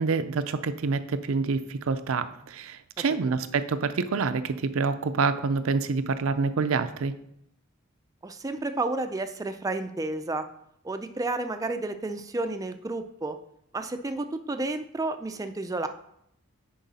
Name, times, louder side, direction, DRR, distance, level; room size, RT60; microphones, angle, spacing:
voice 1, 0.0-7.1, right 4 dB, 75° right, 11 dB, 0.5 m, -27 dB
voice 2, 8.2-10.4 10.8-13.4 13.7-15.9, right 2 dB, 15° right, 7 dB, 0.4 m, -31 dB
10.0 x 4.6 x 4.1 m, 0.73 s
head